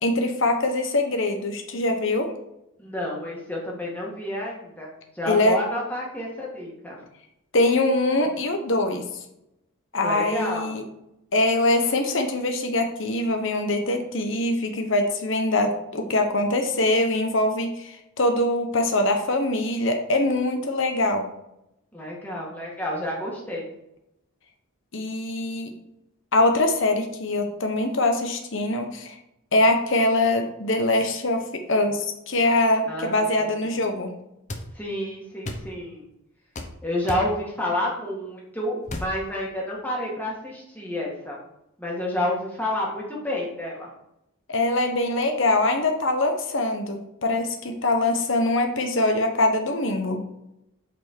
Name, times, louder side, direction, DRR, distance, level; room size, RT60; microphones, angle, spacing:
voice 1, 0.0-2.3 5.3-5.6 7.5-9.0 9.9-10.8 11.3-21.3 24.9-25.7 26.3-29.1 29.5-34.1 44.5-50.2, left 2 dB, 60° left, 5 dB, 1.1 m, -23 dB
voice 2, 2.8-7.0 10.0-10.8 21.9-23.7 32.9-33.6 34.7-36.0 36.8-41.4 41.8-43.9, left 1 dB, 10° left, -4 dB, 1.9 m, -30 dB
sound 1, 34.5-34.7 35.5-35.7 36.6-36.7 37.1-37.3 38.9-39.1, left 1 dB, 35° left, 0.8 m, -32 dB
8.3 x 4.5 x 4.5 m, 0.84 s
head